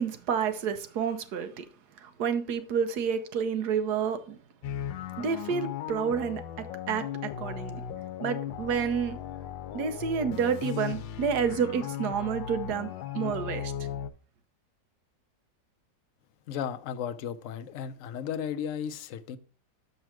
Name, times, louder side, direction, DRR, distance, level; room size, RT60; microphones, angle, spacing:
voice 1, 0.0-1.6 2.0-4.4 5.2-7.8 8.2-9.2 9.7-13.7, right 7 dB, 65° right, 1.3 m, -29 dB
sound 1, 4.6-14.1, left 10 dB, 85° left, 1.3 m, -37 dB
voice 2, 16.5-19.4, left 8 dB, 70° left, 0.7 m, -35 dB
6.2 x 5.5 x 4.6 m
omnidirectional pair, 2.0 m